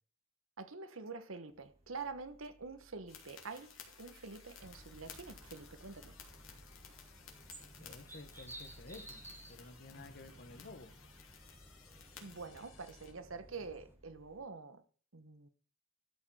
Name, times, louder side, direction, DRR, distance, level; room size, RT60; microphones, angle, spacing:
voice 1, 0.6-6.1 12.2-14.8 15.1-15.5, right 4 dB, 75° right, 1.2 m, -47 dB
sound 1, 1.5-14.5, right 1 dB, 30° right, 3.5 m, -63 dB
sound 2, 3.1-13.1, left 7 dB, 75° left, 2.5 m, -57 dB
sound 3, 4.6-14.0, right 1 dB, 10° right, 1.4 m, -56 dB
voice 2, 7.8-11.0, left 2 dB, 50° left, 1.2 m, -53 dB
12.5 x 5.2 x 5.6 m
head